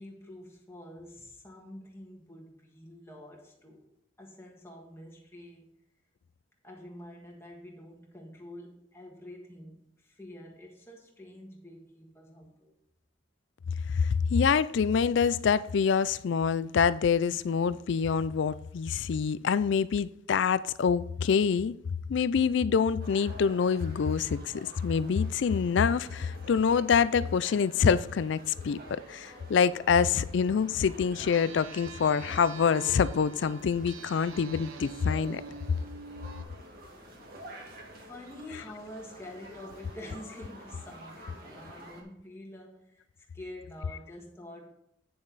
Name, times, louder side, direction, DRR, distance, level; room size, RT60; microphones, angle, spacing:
voice 1, 0.0-3.9 4.2-5.7 6.6-12.8 37.9-44.7, left 1 dB, 15° left, 1.5 m, -47 dB
voice 2, 13.9-21.7 22.1-24.5 24.8-35.4, left 6 dB, 60° left, 0.3 m, -26 dB
sound 1, 23.0-42.0, equal, 45° right, 1.8 m, -49 dB
sound 2, 31.3-36.4, right 4 dB, 80° right, 0.8 m, -46 dB
8.7 x 7.0 x 4.0 m
head